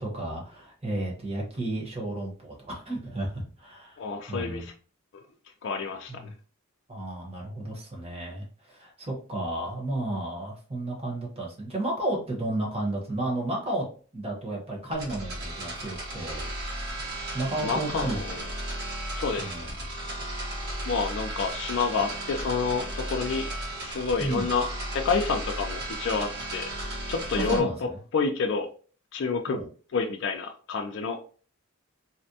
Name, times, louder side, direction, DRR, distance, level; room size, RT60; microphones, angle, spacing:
voice 1, 0.0-4.0 4.3-4.6 6.1-6.3 6.9-13.8 14.1-16.5 17.3-18.2 19.4-19.6 24.2-24.5 27.4-27.8 29.5-29.7, right 1 dB, 30° right, -2 dB, 1.0 m, -32 dB
voice 2, 4.0-4.7 5.6-6.1 17.6-18.4 19.1-19.7 20.9-23.5 23.8-26.7 27.1-27.7 28.1-28.7 29.1-29.6 29.9-31.2, left 5 dB, 55° left, 4 dB, 0.4 m, -28 dB
sound 1, 14.9-27.6, right 1 dB, 50° right, 1.1 m, -35 dB
4.1 x 2.1 x 2.7 m, 0.40 s
head